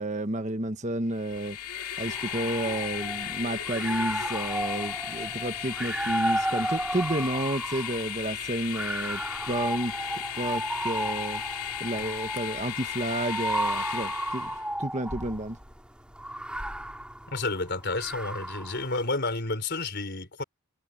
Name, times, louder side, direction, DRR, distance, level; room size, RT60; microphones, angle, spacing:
voice 1, 0.0-1.6 2.0-9.2 9.5-11.4 11.8-14.5 14.8-15.6, right 1 dB, 35° right, 1.4 m, -31 dB
Train, 1.1-14.6, left 10 dB, 85° left, 2.6 m, -36 dB
sound 1, 2.1-3.3 3.7-8.0 8.7-15.4 16.2-18.8, right 1 dB, 5° right, 3.7 m, -33 dB
voice 2, 17.3-20.4, left 3 dB, 50° left, 4.6 m, -30 dB
head